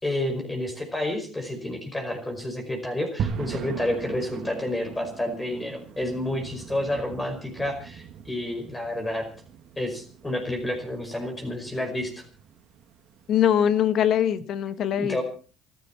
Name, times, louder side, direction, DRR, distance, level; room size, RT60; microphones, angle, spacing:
voice 1, 0.0-9.3 9.8-12.2 15.0-15.2, left 1 dB, 15° left, 4 dB, 5.2 m, -30 dB
sound 1, 3.2-13.4, right 7 dB, 55° right, 2.5 m, -39 dB
voice 2, 13.3-15.2, left 9 dB, 55° left, 12 dB, 1.7 m, -22 dB
28.0 x 11.0 x 4.5 m, 0.40 s
supercardioid pair, 85°, 0 cm